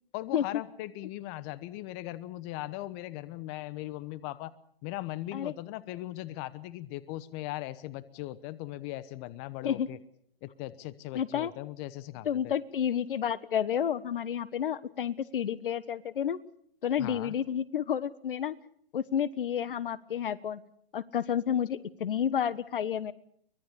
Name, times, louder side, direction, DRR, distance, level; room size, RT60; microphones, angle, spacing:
voice 1, 0.1-4.5 4.8-10.0 10.4-12.5 17.0-17.3, left 16 dB, 30° left, 17 dB, 1.1 m, -39 dB
voice 2, 11.1-11.5 12.2-16.4 16.8-18.5 18.9-20.6 20.9-23.1, left 9 dB, 65° left, 18 dB, 1.4 m, -30 dB
24.5 x 21.0 x 6.9 m, 0.65 s
hypercardioid pair, 135°, 29 cm